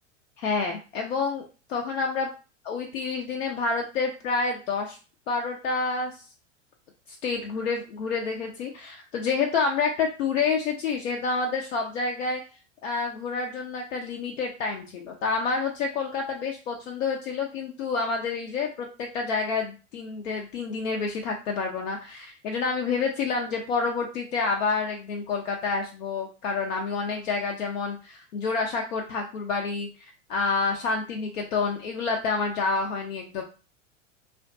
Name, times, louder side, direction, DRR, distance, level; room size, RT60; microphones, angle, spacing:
voice 1, 0.4-2.3 2.6-5.0 5.3-6.3 7.1-12.4 12.8-29.9 30.3-33.4, left 4 dB, 75° left, 1 dB, 0.6 m, -28 dB
2.5 x 2.2 x 2.5 m, 0.33 s
hypercardioid pair, 95°, 38 cm